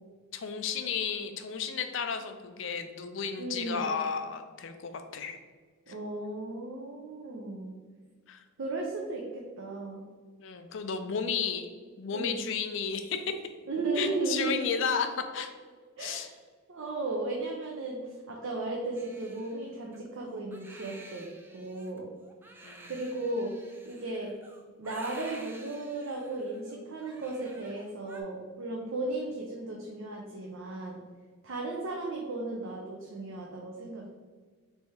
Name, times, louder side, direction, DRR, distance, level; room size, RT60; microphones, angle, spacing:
voice 1, 0.3-5.4 8.3-8.4 10.4-11.7 12.0-13.3 14.0-15.1 15.3-15.5 16.0-16.3 22.6-22.9, left 6 dB, 60° left, 7 dB, 0.4 m, -33 dB
voice 2, 3.4-4.0 5.9-7.7 8.6-10.0 11.3-11.4 12.1-12.4 13.7-14.7 16.0-16.3 16.7-22.1 22.8-23.5 23.9-24.3 24.8-31.0 31.4-34.1, right 2 dB, 70° right, -1 dB, 0.6 m, -35 dB
Crying sobbing, 18.9-28.2, right 2 dB, 10° right, 0.3 m, -51 dB
3.4 x 3.4 x 4.2 m, 1.5 s
head